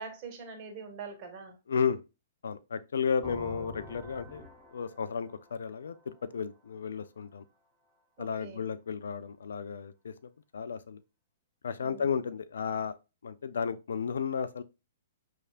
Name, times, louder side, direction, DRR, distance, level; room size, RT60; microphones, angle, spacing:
voice 1, 0.0-1.6 8.2-8.6 11.8-12.2, right 4 dB, 35° right, 1.9 m, -43 dB
voice 2, 1.7-2.0 2.4-4.4 4.7-7.4 8.2-10.1 10.5-11.0 11.6-13.0 13.2-14.6, left 6 dB, 70° left, 0.4 m, -33 dB
sound 1, 3.2-6.9, left 2 dB, 10° left, 1.2 m, -47 dB
6.2 x 3.4 x 2.5 m
figure-of-eight pair, 115°, 0 cm